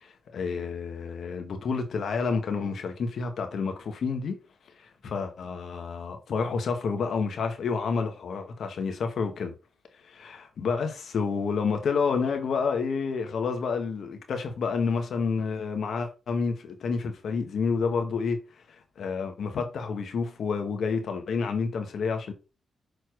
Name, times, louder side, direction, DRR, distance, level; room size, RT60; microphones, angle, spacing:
voice 1, 0.0-4.4 5.0-9.5 10.0-18.4 19.0-22.3, left 5 dB, 70° left, 1.8 m, -29 dB
6.7 x 4.3 x 4.8 m
cardioid pair, 70°, 0 cm